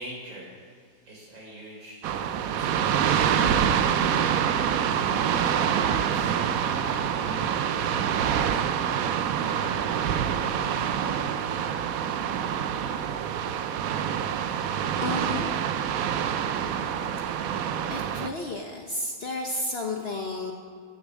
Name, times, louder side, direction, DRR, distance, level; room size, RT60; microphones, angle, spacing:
voice 1, 0.0-11.2, right 1 dB, 85° right, -3 dB, 4.3 m, -44 dB
sound 1, 2.0-18.3, right 8 dB, 70° right, 0.8 m, -26 dB
voice 2, 2.3-2.8 13.5-13.7 15.0-15.6 17.3-20.5, left 2 dB, 45° left, 2 dB, 0.9 m, -34 dB
15.5 x 6.8 x 6.3 m, 2.1 s
omnidirectional pair, 2.0 m